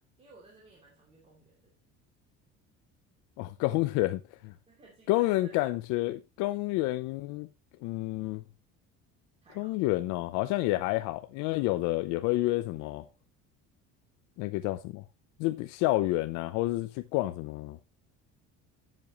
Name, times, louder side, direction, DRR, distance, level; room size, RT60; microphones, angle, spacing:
voice 1, 0.0-1.8 4.7-5.7 9.4-9.8 11.5-12.0, right 3 dB, 20° right, 2.8 m, -56 dB
voice 2, 3.4-4.5 5.1-7.5 7.8-8.4 9.6-13.1 14.4-15.0 15.4-17.8, left 18 dB, 80° left, 0.7 m, -29 dB
12.0 x 7.6 x 3.0 m
cardioid pair, 175°, 29 cm